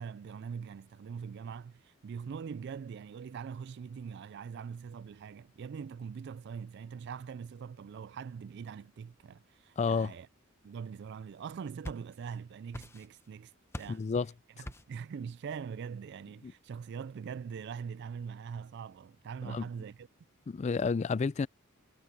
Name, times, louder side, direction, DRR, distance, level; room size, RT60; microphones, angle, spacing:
voice 1, 0.0-10.3 10.6-13.5 13.8-14.0 14.6-20.1, right 6 dB, 55° right, 0.3 m, -42 dB
voice 2, 9.8-10.1 13.9-14.3 16.4-16.5 19.4-19.7 20.5-21.5, left 5 dB, 35° left, 0.3 m, -30 dB
sound 1, 11.4-12.4 12.7-13.3 13.7-14.1 14.6-15.0, left 1 dB, 10° left, 0.8 m, -45 dB
head